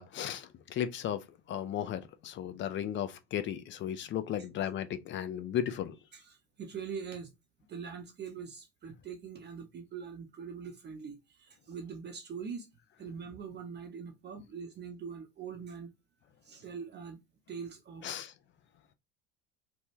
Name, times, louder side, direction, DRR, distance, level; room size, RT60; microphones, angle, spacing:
voice 1, 0.0-6.0 18.0-18.3, left 10 dB, 35° left, 0.5 m, -35 dB
voice 2, 6.1-7.3 7.7-12.7 13.0-15.9 16.4-17.2 17.5-18.2, right 6 dB, 30° right, 0.6 m, -43 dB
3.2 x 2.2 x 2.7 m
hypercardioid pair, 75°, 33 cm